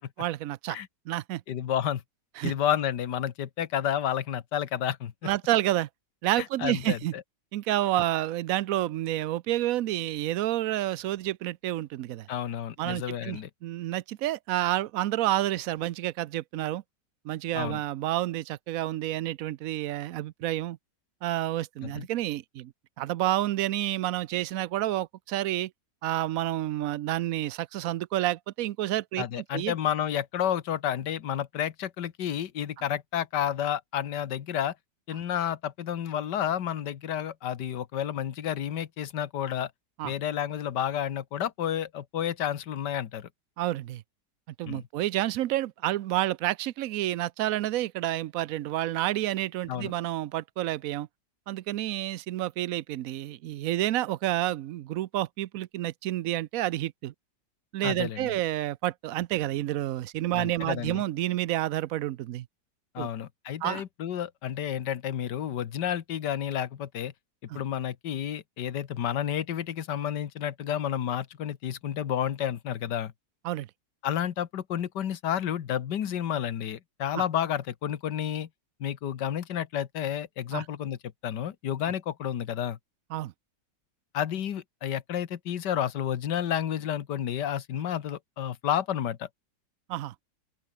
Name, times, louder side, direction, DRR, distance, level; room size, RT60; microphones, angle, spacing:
voice 1, 0.2-0.8 1.1-1.4 2.4-2.5 5.2-5.9 6.2-7.1 7.5-12.3 12.8-16.8 17.2-20.8 21.2-22.7 23.0-25.7 26.0-29.3 29.5-29.7 40.0-40.1 43.6-44.0 44.6-51.1 51.5-57.1 57.7-62.5 63.0-63.1 63.6-63.8 67.5-67.6 73.4-73.7 77.1-77.2 80.5-80.6 83.1-83.3 89.9-90.1, right 14 dB, 65° right, 0.9 m, -29 dB
voice 2, 1.5-2.0 2.4-5.1 6.4-7.2 12.3-13.5 17.5-17.8 21.8-22.1 29.2-34.7 35.1-39.7 40.0-43.3 44.7-44.9 49.7-49.9 57.8-58.3 60.3-61.0 62.9-67.1 67.5-73.1 74.0-78.5 78.8-81.0 81.2-82.8 84.1-89.3, left 10 dB, 70° left, 1.8 m, -31 dB
open air
omnidirectional pair, 1.9 m